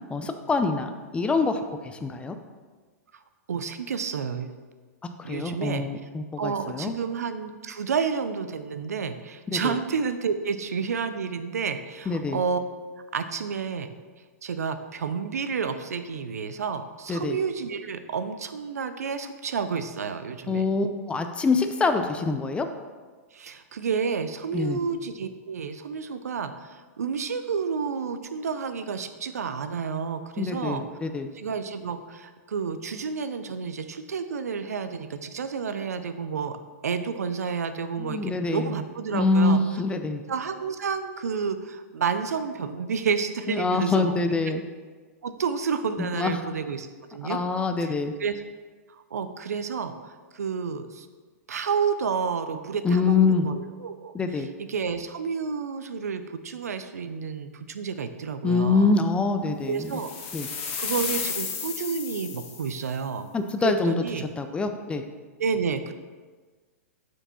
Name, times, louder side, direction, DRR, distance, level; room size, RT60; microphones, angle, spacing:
voice 1, 0.1-2.4 5.0-6.9 9.5-9.7 12.1-12.4 17.1-17.4 20.5-22.7 24.5-24.8 30.4-31.3 38.0-38.7 39.1-40.2 43.5-44.6 46.0-46.4 47.3-48.1 52.8-53.5 54.1-54.5 58.4-59.9 60.3-60.5 63.3-63.9 64.4-65.0, left 3 dB, 15° left, 7 dB, 0.5 m, -25 dB
voice 2, 3.5-4.5 5.2-5.9 6.4-12.6 13.1-13.9 14.4-20.7 23.3-30.8 31.3-36.6 36.8-39.6 40.3-44.2 44.5-44.6 45.2-47.4 47.8-47.9 48.2-48.4 48.9-51.1 51.5-59.0 59.7-60.1 60.8-63.3 63.6-64.3 65.4-65.9, right 6 dB, 80° right, 10 dB, 0.5 m, -30 dB
sound 1, 59.8-62.9, left 6 dB, 45° left, 1.3 m, -33 dB
6.6 x 4.6 x 4.3 m, 1.4 s
hypercardioid pair, 115°, 8 cm